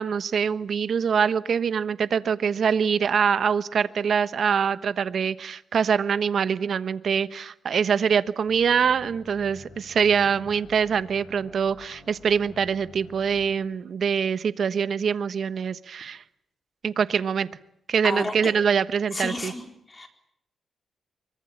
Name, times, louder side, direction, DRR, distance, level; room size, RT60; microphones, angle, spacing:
voice 1, 0.0-16.2 16.8-17.5 17.9-19.5, right 6 dB, 60° right, 14 dB, 1.2 m, -24 dB
sound 1, 8.5-13.6, left 3 dB, 55° left, 7.6 m, -49 dB
voice 2, 18.0-18.5 19.1-20.1, left 2 dB, 25° left, 5 dB, 4.3 m, -32 dB
24.5 x 23.5 x 8.9 m, 0.73 s
cardioid pair, 105°, 0 cm